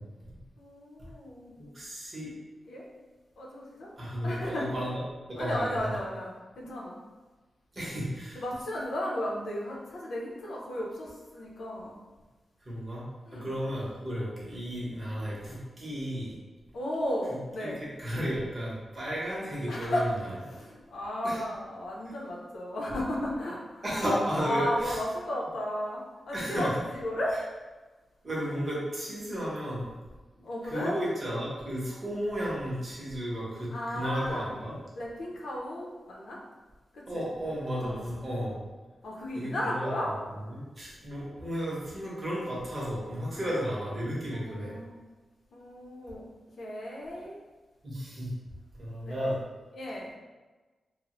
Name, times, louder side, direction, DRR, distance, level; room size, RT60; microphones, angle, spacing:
voice 1, 0.0-0.4 1.0-1.1 1.6-2.3 4.0-5.0 5.3-5.9 7.7-8.4 12.6-13.0 13.3-16.4 17.3-20.1 21.2-21.4 23.8-25.0 26.3-26.7 28.2-29.9 30.6-34.8 37.1-38.6 39.3-40.2 40.5-44.7 47.8-48.3 48.8-49.4, equal, 35° right, -6 dB, 0.9 m, -33 dB
voice 2, 0.6-1.6 2.7-2.9 3.4-3.9 4.2-4.7 5.4-6.9 8.3-12.0 13.3-13.5 16.7-17.8 19.7-20.1 20.5-23.8 24.3-27.3 30.4-31.0 33.7-34.5 35.0-36.4 36.9-37.2 37.8-38.1 39.0-40.1 43.4-43.5 44.3-45.0 45.5-46.3 46.6-47.3 49.0-49.3 49.7-50.1, left 1 dB, 90° left, -4 dB, 0.6 m, -34 dB
3.0 x 2.1 x 2.9 m, 1.2 s
wide cardioid pair, 140°, 0 cm